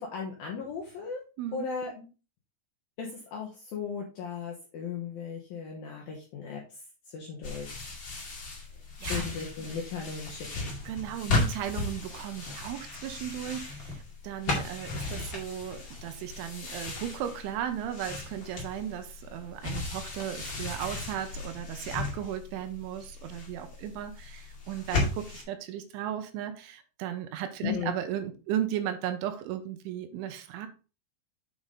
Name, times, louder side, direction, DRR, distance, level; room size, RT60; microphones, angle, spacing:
voice 1, 0.0-1.2 1.5-2.1 3.0-6.8 7.1-7.9 9.1-10.7 27.6-27.9, left 6 dB, 75° left, -1 dB, 2.2 m, -36 dB
voice 2, 1.4-1.7 9.0-9.3 10.9-30.7, right 10 dB, 85° right, 8 dB, 3.1 m, -36 dB
sound 1, 7.4-25.4, left 3 dB, 40° left, 1.9 m, -36 dB
8.1 x 5.3 x 3.8 m, 0.33 s
omnidirectional pair, 5.7 m